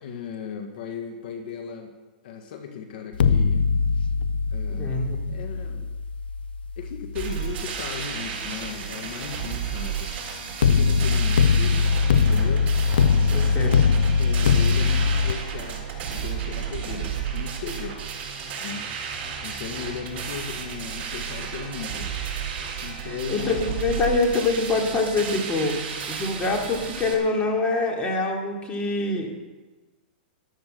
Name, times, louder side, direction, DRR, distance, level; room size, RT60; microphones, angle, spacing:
voice 1, 0.0-1.9 2.2-3.7 4.5-5.0 5.3-5.9 6.8-12.7 13.4-18.0 18.6-18.9 19.4-22.1 22.8-23.7, left 6 dB, 60° left, 5 dB, 1.8 m, -36 dB
sound 1, 3.1-8.2 10.6-15.3, left 5 dB, 80° left, 0.9 m, -22 dB
voice 2, 4.7-5.2 13.3-13.9 23.3-25.8 26.1-29.3, left 3 dB, 20° left, 0 dB, 3.2 m, -25 dB
sound 2, 7.1-27.1, right 7 dB, 35° right, 6.9 m, -33 dB
13.5 x 13.0 x 6.8 m, 1.2 s
hypercardioid pair, 130°, 5 cm